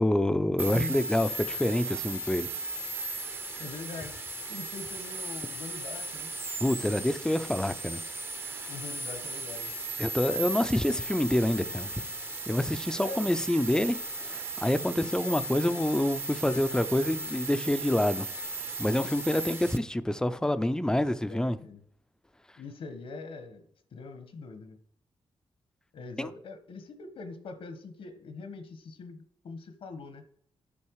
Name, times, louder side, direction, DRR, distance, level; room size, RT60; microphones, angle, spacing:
voice 1, 0.0-2.5 6.6-8.0 8.5-8.7 10.0-11.9 12.5-18.3 18.8-21.6 26.2-26.3, left 1 dB, 5° left, 0.5 m, -27 dB
sound 1, 0.6-19.8, right 2 dB, 25° right, 0.8 m, -36 dB
voice 2, 0.7-1.1 3.6-4.2 4.5-6.3 8.7-9.7 13.0-13.3 21.0-21.8 22.6-23.6 23.9-24.8 25.9-30.2, left 4 dB, 80° left, 1.2 m, -42 dB
8.6 x 5.6 x 4.7 m
cardioid pair, 100°, 9 cm